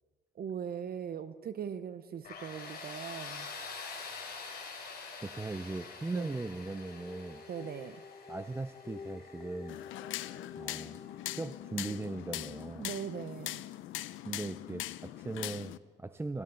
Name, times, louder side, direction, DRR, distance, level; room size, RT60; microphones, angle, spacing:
voice 1, 0.3-3.5 6.1-6.4 7.5-8.0 12.8-13.7, right 8 dB, 50° right, 12 dB, 0.6 m, -40 dB
Tools, 2.2-11.0, left 4 dB, 50° left, 3.2 m, -46 dB
voice 2, 5.2-7.4 8.3-9.8 10.6-11.0 11.3-12.9 14.2-16.4, right 2 dB, 10° right, 11 dB, 0.4 m, -39 dB
sound 1, 6.4-12.5, left 5 dB, 30° left, 0.9 m, -50 dB
sound 2, 9.7-15.8, left 15 dB, 80° left, 0.5 m, -41 dB
17.0 x 14.5 x 3.8 m, 1.5 s
cardioid pair, 90°, 20 cm